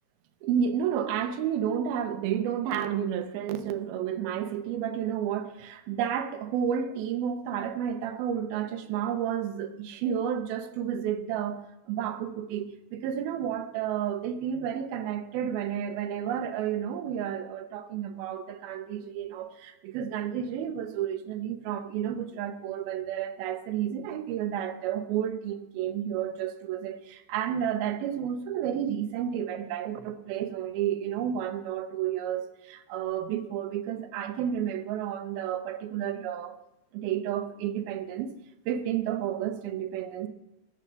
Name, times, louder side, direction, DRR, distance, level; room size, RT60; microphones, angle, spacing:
voice 1, 0.4-36.6 36.9-38.3 38.7-40.3, right 9 dB, 75° right, 9 dB, 2.6 m, -31 dB
14.5 x 8.1 x 6.8 m, 0.90 s
omnidirectional pair, 4.6 m